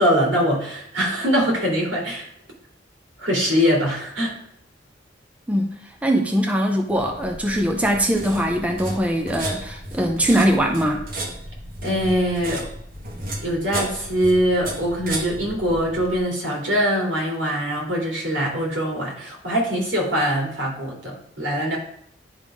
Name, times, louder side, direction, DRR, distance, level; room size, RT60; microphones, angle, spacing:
voice 1, 0.0-2.3 3.2-4.4 11.8-12.7 13.4-21.8, equal, 75° right, -2 dB, 2.8 m, -22 dB
voice 2, 5.5-11.0, equal, 10° right, 2 dB, 0.6 m, -21 dB
sound 1, 6.9-16.2, right 1 dB, 50° right, 1.2 m, -34 dB
10.5 x 3.6 x 4.9 m, 0.69 s
head